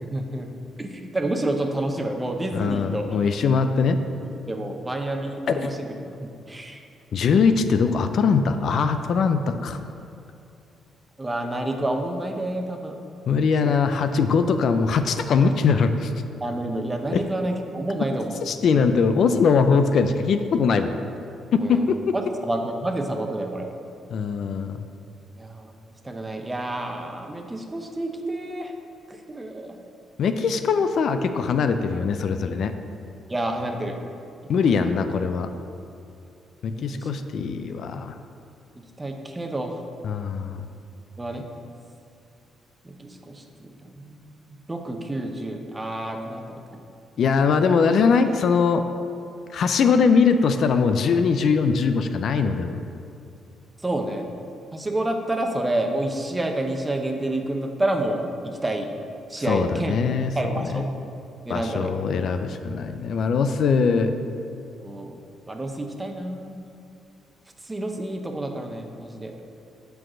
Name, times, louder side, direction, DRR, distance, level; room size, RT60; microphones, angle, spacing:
voice 1, 0.0-0.5 0.8-3.2 4.5-5.9 6.2-6.8 11.2-13.0 13.6-13.8 16.4-18.4 18.7-18.9 21.6-21.9 22.1-23.7 25.4-25.7 26.0-28.7 29.1-29.8 33.3-34.0 34.4-34.6 36.7-37.1 38.7-39.8 41.2-41.4 42.8-46.4 53.8-54.3 54.7-58.3 58.6-58.9 59.3-60.0 60.4-60.9 61.4-61.9 64.8-65.1 65.5-66.7 67.6-69.3, right 1 dB, 15° right, 3 dB, 0.8 m, -29 dB
voice 2, 2.5-4.0 5.5-5.7 7.1-9.8 13.3-16.1 18.5-20.9 21.7-22.0 24.1-24.8 30.2-32.7 34.5-35.5 36.6-38.2 40.0-40.7 47.2-48.8 49.5-52.8 59.5-60.8 61.5-64.2, left 5 dB, 65° left, 8 dB, 0.4 m, -21 dB
6.3 x 4.6 x 6.2 m, 2.6 s
cardioid pair, 90°, 0 cm